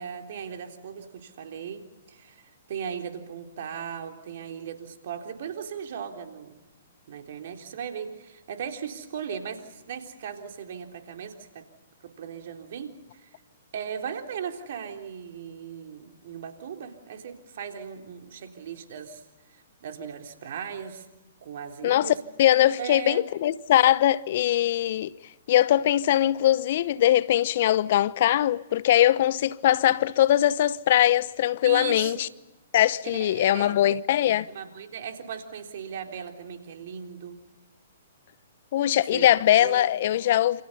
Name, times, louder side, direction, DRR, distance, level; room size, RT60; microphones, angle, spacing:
voice 1, 0.0-1.8 2.1-2.4 2.7-6.6 7.1-11.7 12.0-13.3 13.7-19.2 19.8-21.1 21.4-22.2 22.8-23.3 31.6-32.2 33.1-33.8 34.5-37.4 39.1-39.3 39.6-39.9, right 7 dB, 60° right, 3.7 m, -37 dB
voice 2, 21.8-25.1 25.5-32.3 32.7-34.5 38.7-40.6, left 12 dB, 55° left, 0.9 m, -21 dB
28.5 x 28.0 x 5.5 m
hypercardioid pair, 125°, 0 cm